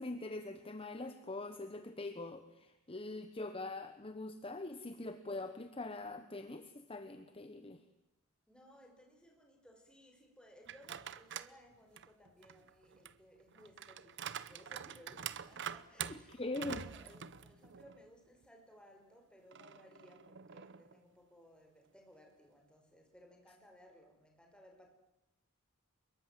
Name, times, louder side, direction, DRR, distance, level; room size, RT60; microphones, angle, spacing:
voice 1, 0.0-7.8 16.3-16.8, left 2 dB, 25° left, 9 dB, 1.2 m, -43 dB
voice 2, 8.5-16.4 16.8-24.9, equal, 5° left, 2 dB, 5.5 m, -61 dB
sound 1, 10.7-11.6 12.0-18.1 18.4-18.5 19.5-21.0, right 8 dB, 55° right, 0.9 m, -46 dB
25.0 x 22.5 x 7.6 m, 0.93 s
head